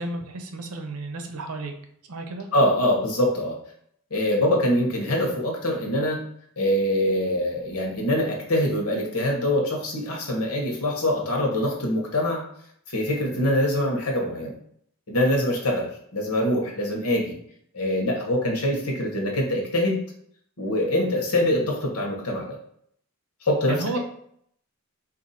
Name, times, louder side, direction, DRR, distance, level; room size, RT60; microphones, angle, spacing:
voice 1, 0.0-1.7 2.1-2.5 23.7-24.0, right 2 dB, 75° right, 5 dB, 0.7 m, -32 dB
voice 2, 2.5-3.6 4.1-6.2 6.6-12.4 12.9-14.5 15.1-17.3 17.7-20.0 20.6-22.5 23.4-24.0, left 1 dB, 75° left, 0 dB, 1.2 m, -24 dB
4.1 x 2.7 x 4.2 m, 0.67 s
head